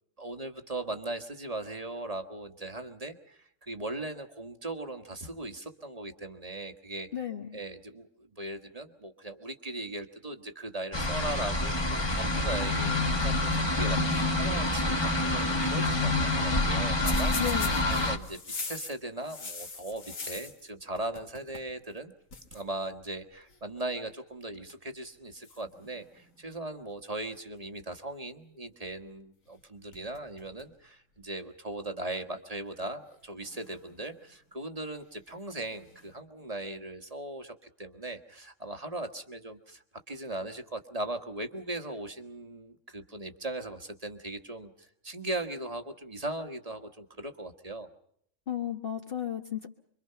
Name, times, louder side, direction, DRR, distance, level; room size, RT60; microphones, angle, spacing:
voice 1, 0.2-7.1 7.5-17.4 17.9-18.4 18.7-22.1 22.5-47.9, right 2 dB, 30° right, 6 dB, 1.4 m, -39 dB
voice 2, 7.1-7.6 17.4-17.9 48.5-49.7, left 10 dB, 45° left, 3 dB, 1.4 m, -34 dB
sound 1, 10.9-18.2, left 2 dB, 20° left, 1.5 m, -27 dB
sound 2, 17.0-20.7 21.0-21.7 22.0-22.1 22.3-22.6 23.5-23.8 24.5-24.9 25.4-26.5 29.5-29.6 29.9-30.7 31.2-31.3 32.2-32.3 33.4-34.3 35.5-36.1, left 4 dB, 75° left, 2.3 m, -42 dB
26.0 x 23.5 x 5.7 m, 0.69 s
omnidirectional pair, 1.4 m